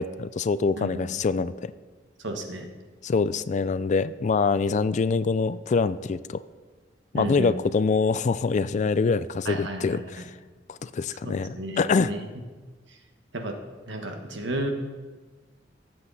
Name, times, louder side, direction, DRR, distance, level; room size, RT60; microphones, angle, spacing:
voice 1, 0.0-1.7 3.0-6.4 7.1-10.2 10.7-12.1, left 4 dB, 40° left, 15 dB, 0.3 m, -25 dB
voice 2, 2.2-2.7 7.1-7.5 9.4-10.0 11.2-12.3 13.3-13.6 13.9-14.7, right 1 dB, 70° right, 4 dB, 1.5 m, -33 dB
18.0 x 7.8 x 4.1 m, 1.4 s
head